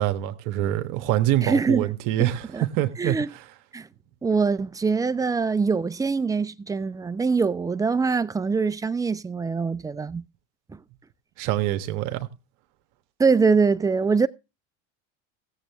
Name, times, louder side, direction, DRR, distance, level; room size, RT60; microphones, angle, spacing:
voice 1, 0.0-2.4 2.7-3.2 11.4-12.3, right 14 dB, 65° right, 1.3 m, -25 dB
voice 2, 1.4-1.9 2.5-2.6 3.0-3.3 3.7-3.9 4.2-10.2 10.7-10.8 13.2-14.3, right 4 dB, 10° right, 0.5 m, -23 dB
16.5 x 7.4 x 3.4 m
supercardioid pair, 95°, 35 cm